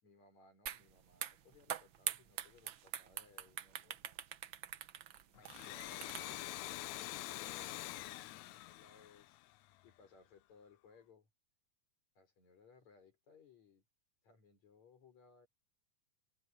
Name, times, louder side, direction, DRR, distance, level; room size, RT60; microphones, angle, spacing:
voice 1, 0.0-4.2 5.4-9.4 9.8-11.3 12.2-13.8 14.2-15.5, left 5 dB, 60° left, 6.3 m, -64 dB
sound 1, 0.7-0.8 1.1-6.5, right 10 dB, 85° right, 1.0 m, -44 dB
Domestic sounds home sounds, 5.4-9.9, left 16 dB, 75° left, 1.9 m, -46 dB
omnidirectional pair, 3.6 m